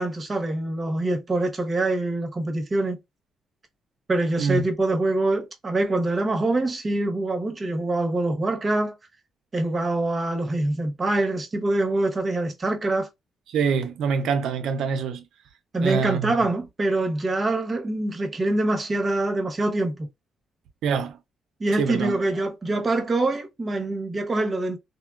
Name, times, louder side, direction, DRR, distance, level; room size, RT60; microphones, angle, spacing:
voice 1, 0.0-3.0 4.1-9.0 9.5-13.1 15.7-20.1 21.6-24.8, right 2 dB, 30° right, 1.0 m, -25 dB
voice 2, 13.5-15.2 15.8-16.3 20.8-21.2 21.8-22.2, right 6 dB, 80° right, 0.6 m, -25 dB
3.4 x 2.2 x 2.4 m
cardioid pair, 90°, 0 cm